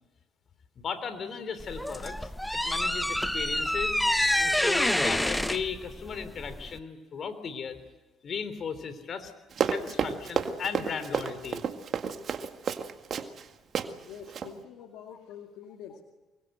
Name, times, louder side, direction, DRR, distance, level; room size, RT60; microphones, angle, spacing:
voice 1, 0.8-2.3 2.6-4.0 4.4-7.7 8.2-9.3 9.6-11.6, left 6 dB, 50° left, 11 dB, 3.6 m, -36 dB
sound 1, 1.6-6.8, left 1 dB, 5° left, 1.0 m, -27 dB
Run, 9.5-13.4 13.7-13.9 14.3-14.5, right 7 dB, 55° right, 1.9 m, -31 dB
voice 2, 14.1-16.0, left 7 dB, 75° left, 4 dB, 2.1 m, -45 dB
25.0 x 23.0 x 8.0 m, 1.2 s
hypercardioid pair, 55°, 0 cm